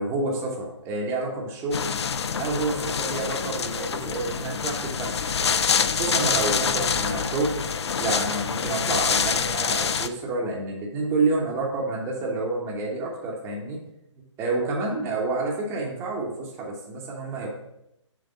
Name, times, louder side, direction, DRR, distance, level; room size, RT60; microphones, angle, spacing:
voice 1, 0.0-1.8 2.4-5.5 6.0-7.6 8.0-13.8 14.4-17.5, right 3 dB, 15° right, -2 dB, 1.1 m, -29 dB
sound 1, 1.7-10.1, left 6 dB, 60° left, 0.5 m, -26 dB
6.9 x 3.4 x 5.3 m, 0.81 s
figure-of-eight pair, 135°, 16 cm